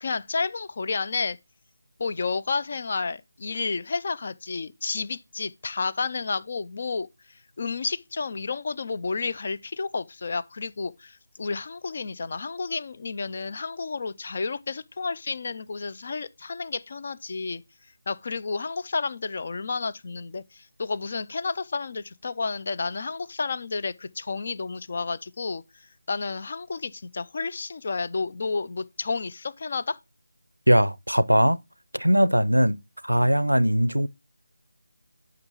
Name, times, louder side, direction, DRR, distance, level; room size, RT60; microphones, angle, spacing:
voice 1, 0.0-1.4 2.0-17.6 18.1-30.0, left 4 dB, 40° left, 0.5 m, -31 dB
voice 2, 30.7-31.6 31.9-32.8 33.0-34.1, equal, 85° right, 0.5 m, -20 dB
8.7 x 6.0 x 2.9 m
figure-of-eight pair, 160°, 0 cm